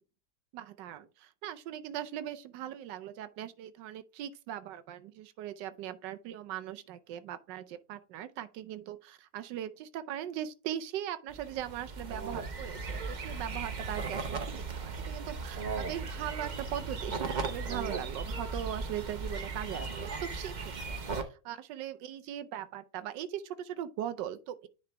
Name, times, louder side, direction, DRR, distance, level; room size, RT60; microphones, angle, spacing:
voice 1, 0.5-20.5 20.8-21.0 21.3-24.7, right 11 dB, 80° right, 1.3 m, -40 dB
sound 1, 11.3-21.2, right 4 dB, 50° right, 0.5 m, -37 dB
9.9 x 4.0 x 3.4 m
omnidirectional pair, 1.9 m